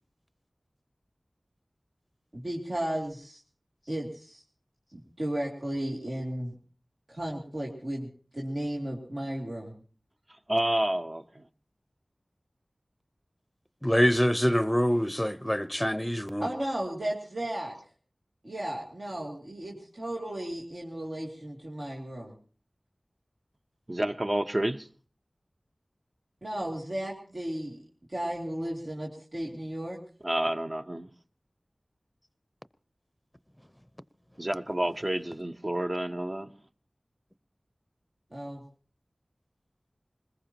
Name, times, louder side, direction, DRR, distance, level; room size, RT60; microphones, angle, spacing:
voice 1, 2.3-3.4 3.9-4.4 4.9-6.6 7.1-9.8 16.4-17.7 18.4-22.3 26.4-27.8 28.1-30.0 38.3-38.6, right 1 dB, 65° right, 2.8 m, -34 dB
voice 2, 10.5-11.4 23.9-24.9 30.2-31.1 34.4-36.5, right 1 dB, 40° right, 0.9 m, -29 dB
voice 3, 13.8-16.5, equal, 10° left, 0.7 m, -25 dB
22.0 x 20.5 x 3.0 m
wide cardioid pair, 50°, 0 cm